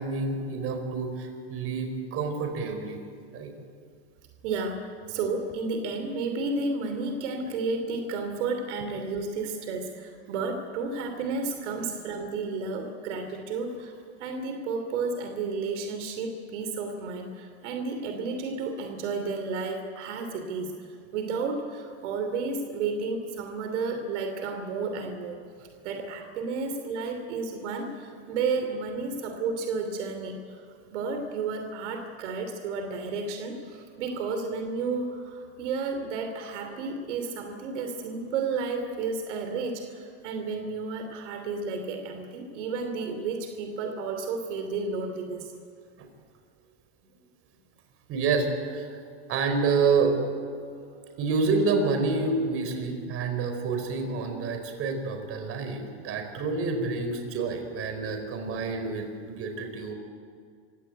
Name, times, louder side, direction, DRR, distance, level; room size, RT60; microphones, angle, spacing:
voice 1, 0.0-3.0 3.3-3.5 11.8-11.9 46.0-46.1 48.1-49.0 49.3-50.1 51.2-59.9, right 4 dB, 40° right, 5 dB, 4.6 m, -28 dB
voice 2, 4.4-13.9 14.2-30.6 30.9-45.5 50.8-50.9, right 4 dB, 80° right, 5 dB, 3.1 m, -32 dB
26.5 x 16.5 x 9.2 m, 2.2 s
supercardioid pair, 135°, 35 cm